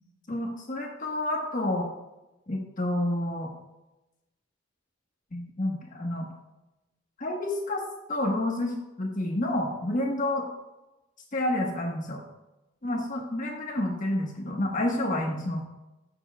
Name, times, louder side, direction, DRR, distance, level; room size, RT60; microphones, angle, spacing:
voice 1, 0.3-1.9 2.5-3.5 5.3-6.3 7.2-7.8 8.1-10.5 11.3-12.2 12.8-15.6, left 1 dB, 45° left, 0 dB, 1.2 m, -29 dB
14.5 x 6.9 x 2.2 m, 0.98 s
head